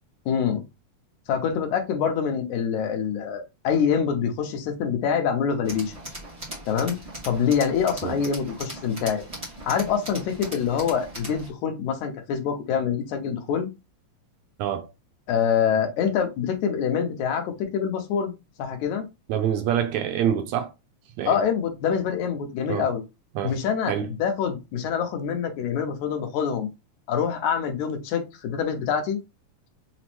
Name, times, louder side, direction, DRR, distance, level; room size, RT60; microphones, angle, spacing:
voice 1, 0.3-0.6 1.3-5.9 6.7-7.0 7.3-9.2 9.6-13.7 15.3-18.3 18.6-19.1 21.3-23.0 23.4-26.7 27.1-29.2, left 7 dB, 85° left, 2.2 m, -25 dB
Tools, 5.6-11.5, right 1 dB, 35° right, 0.5 m, -39 dB
voice 2, 19.3-20.7 21.2-21.4 22.7-22.9 23.4-23.6 23.9-24.1, right 9 dB, 80° right, 1.7 m, -26 dB
6.0 x 2.0 x 2.9 m
omnidirectional pair, 3.4 m